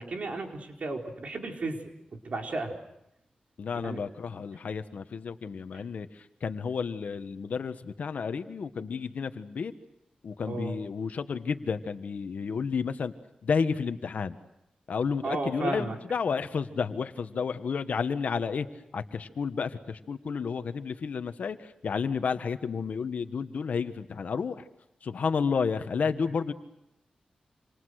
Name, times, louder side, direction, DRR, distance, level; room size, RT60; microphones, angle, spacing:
voice 1, 0.0-1.9 2.2-2.8 3.7-4.0 10.5-10.7 15.2-16.0, right 2 dB, 60° right, 2 dB, 4.5 m, -33 dB
voice 2, 3.6-9.7 10.2-13.1 13.4-14.3 14.9-18.7 18.9-24.6 25.0-26.5, left 5 dB, 75° left, 9 dB, 1.5 m, -31 dB
28.0 x 27.5 x 6.5 m, 0.85 s
cardioid pair, 75°, 3 cm